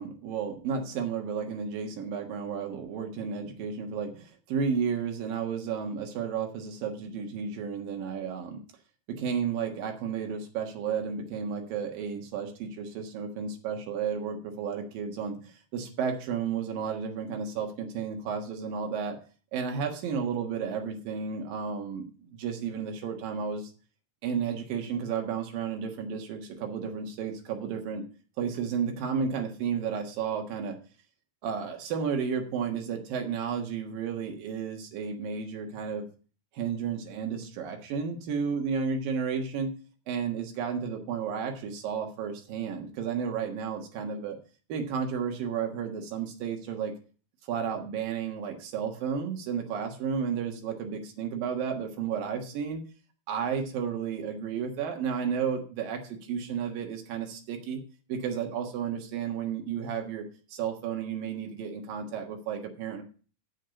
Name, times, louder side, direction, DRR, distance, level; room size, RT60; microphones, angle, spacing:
voice 1, 0.0-8.6 9.1-19.2 19.5-23.7 24.2-28.0 28.4-30.8 31.4-36.1 36.5-39.7 40.1-44.4 44.7-46.9 47.5-52.8 53.3-57.8 58.1-63.0, right 6 dB, 80° right, 3 dB, 3.3 m, -32 dB
7.2 x 6.8 x 7.0 m, 0.38 s
omnidirectional pair, 4.0 m